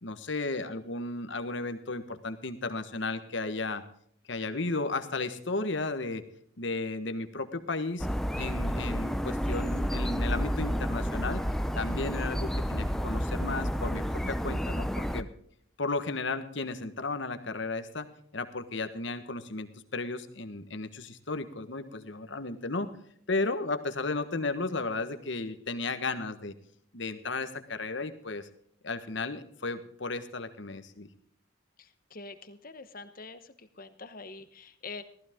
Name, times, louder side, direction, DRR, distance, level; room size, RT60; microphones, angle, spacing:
voice 1, 0.0-3.8 4.3-6.2 6.6-8.1 8.3-11.4 11.7-15.3 15.8-18.1 18.3-22.9 23.3-26.5 26.9-28.5 28.8-31.1, left 3 dB, 60° left, 10 dB, 1.3 m, -34 dB
sound 1, 8.0-15.2, equal, ahead, 0.5 m, -30 dB
voice 2, 31.8-35.0, left 3 dB, 45° left, 11 dB, 1.1 m, -45 dB
15.0 x 15.0 x 3.7 m, 0.63 s
head